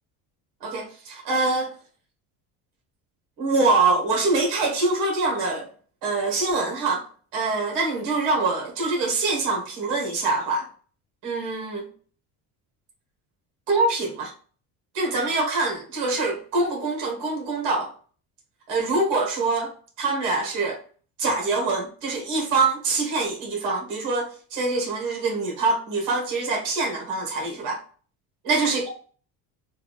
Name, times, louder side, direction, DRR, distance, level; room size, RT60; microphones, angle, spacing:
voice 1, 0.6-1.7 3.4-5.7 6.0-7.1 7.3-10.7 11.2-11.9 13.7-14.3 14.9-17.9 18.7-20.8 21.2-27.8 28.5-28.9, right 3 dB, 55° right, 1.4 m, -24 dB
3.7 x 2.4 x 3.1 m
cardioid pair, 180°, 41 cm